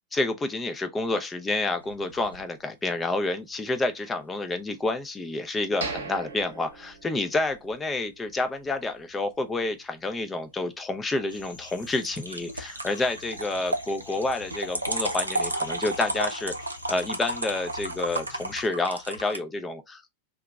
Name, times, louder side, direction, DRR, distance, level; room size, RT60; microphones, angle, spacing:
voice 1, 0.1-16.5 16.9-20.0, left 2 dB, 15° left, 0.6 m, -29 dB
sound 1, 1.8-2.4 12.0-19.4, right 2 dB, 80° right, 0.5 m, -32 dB
sound 2, 5.8-7.7 8.1-8.2 8.7-8.9, right 4 dB, 65° right, 0.9 m, -37 dB
sound 3, 11.3-18.7, left 4 dB, 85° left, 0.8 m, -47 dB
2.8 x 2.3 x 3.4 m
figure-of-eight pair, 90°, 0 cm